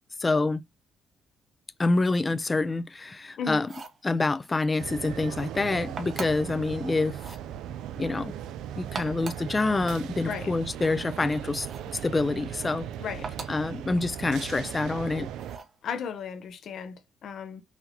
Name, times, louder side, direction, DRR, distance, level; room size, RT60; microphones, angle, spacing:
voice 1, 0.2-0.6 1.8-3.7 4.0-7.2 8.0-8.3 8.8-11.7 12.0-12.9 13.5-15.3, left 3 dB, 25° left, 0.4 m, -26 dB
sound 1, 3.6-4.0 6.0-6.5 7.1-7.5 8.8-9.5 11.6-12.0 13.2-13.7 15.4-15.8, right 4 dB, 40° right, 1.1 m, -40 dB
sound 2, 4.8-15.6, right 10 dB, 85° right, 0.4 m, -38 dB
voice 2, 15.8-17.6, left 7 dB, 65° left, 0.7 m, -35 dB
5.7 x 2.8 x 2.9 m
cardioid pair, 90°, 0 cm